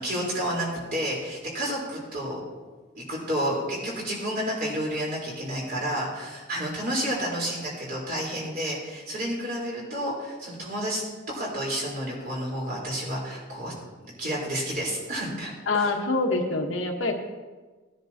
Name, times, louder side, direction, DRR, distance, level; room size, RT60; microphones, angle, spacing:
voice 1, 0.0-2.4 2.9-13.7 14.2-15.5 15.8-15.9, equal, 45° right, -4 dB, 4.2 m, -30 dB
voice 2, 15.7-17.1, left 3 dB, 75° left, 2 dB, 1.4 m, -25 dB
18.5 x 10.0 x 2.9 m, 1.3 s
head